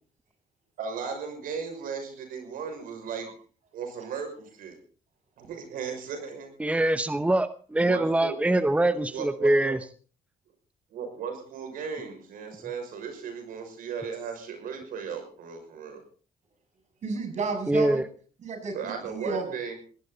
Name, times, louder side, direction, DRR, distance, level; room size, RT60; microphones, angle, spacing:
voice 1, 0.8-3.3 3.7-4.8 5.4-6.5 7.8-9.8 10.9-16.0 18.7-19.8, right 6 dB, 80° right, 6 dB, 6.0 m, -36 dB
voice 2, 6.6-9.8 17.7-18.0, right 1 dB, 10° right, 12 dB, 0.9 m, -24 dB
voice 3, 17.0-18.0 18.4-19.5, right 4 dB, 55° right, 5 dB, 7.0 m, -32 dB
20.0 x 17.0 x 4.0 m, 0.41 s
cardioid pair, 95°, 14 cm